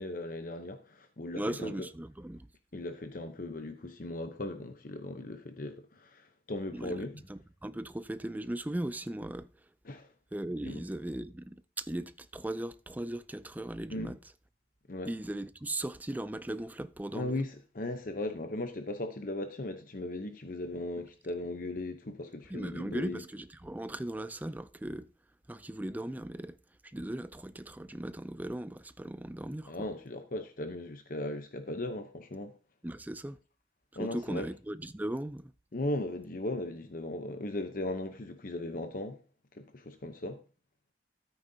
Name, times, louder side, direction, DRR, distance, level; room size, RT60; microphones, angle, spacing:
voice 1, 0.0-1.9 2.7-7.2 9.8-10.1 10.6-10.8 13.9-14.2 14.9-15.1 17.1-23.2 29.7-32.5 34.0-34.5 35.7-39.2 39.5-40.4, left 2 dB, 50° left, 0.8 m, -37 dB
voice 2, 1.4-2.5 6.7-9.5 10.3-14.2 15.1-17.4 22.5-25.1 25.5-26.6 26.9-29.7 32.8-33.4 34.0-35.5, right 1 dB, 10° right, 0.4 m, -38 dB
13.5 x 8.8 x 2.8 m
head